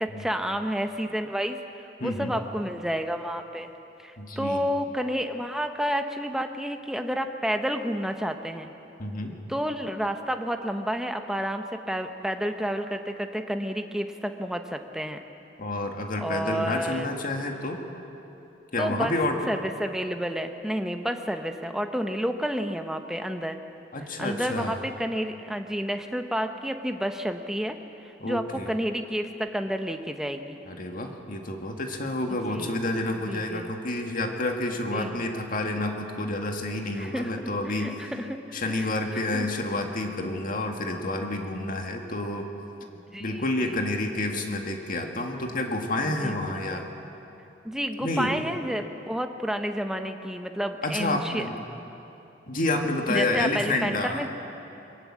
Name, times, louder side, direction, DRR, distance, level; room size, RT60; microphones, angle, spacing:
voice 1, 0.0-1.6 2.0-3.7 4.0-8.7 9.5-15.2 16.2-17.1 18.8-19.1 19.5-23.6 24.2-27.8 28.2-30.6 32.5-32.8 33.3-33.7 34.9-35.2 36.9-37.3 37.6-39.5 42.8-43.8 46.0-46.9 47.6-51.5 53.1-54.3, equal, 5° right, 6 dB, 1.0 m, -30 dB
voice 2, 2.0-2.3 4.2-4.7 9.0-9.4 15.6-17.8 18.7-19.5 23.9-24.8 28.2-28.7 30.7-38.1 38.5-42.5 43.2-46.9 48.0-48.3 50.8-51.5 52.5-54.3, left 2 dB, 50° left, 3 dB, 2.0 m, -29 dB
22.0 x 18.5 x 7.6 m, 2.9 s
head